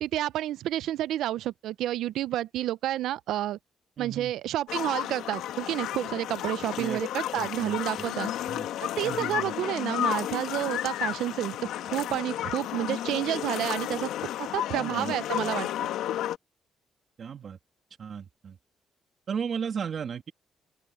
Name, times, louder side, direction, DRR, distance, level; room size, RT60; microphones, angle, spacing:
voice 1, 0.0-3.6 4.0-8.3 9.0-11.6 11.9-15.7, right 13 dB, 80° right, 0.6 m, -30 dB
voice 2, 4.0-4.3 6.8-7.0 7.3-8.1 8.5-8.7 9.0-9.5 14.7-15.1 17.2-17.6 18.0-18.6 19.3-20.3, right 7 dB, 50° right, 2.5 m, -35 dB
sound 1, 4.7-16.4, left 12 dB, 85° left, 1.4 m, -32 dB
open air
cardioid pair, 90°, 0 cm